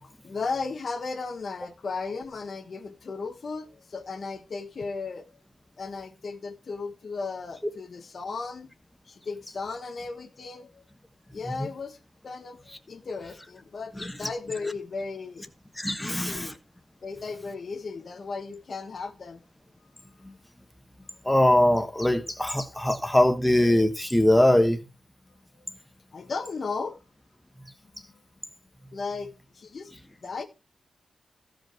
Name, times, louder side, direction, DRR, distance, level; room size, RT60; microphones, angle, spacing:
voice 1, 0.0-5.2 5.8-8.7 9.1-10.8 11.3-12.0 12.2-15.5 16.0-16.6 17.0-19.4 25.6-25.7 26.1-27.0 28.1-28.2 28.9-29.9 30.2-30.4, left 4 dB, 45° left, 1.2 m, -35 dB
voice 2, 15.8-16.5 21.2-24.8, left 1 dB, 5° left, 1.1 m, -22 dB
15.5 x 5.2 x 4.6 m
wide cardioid pair, 180°, 0 cm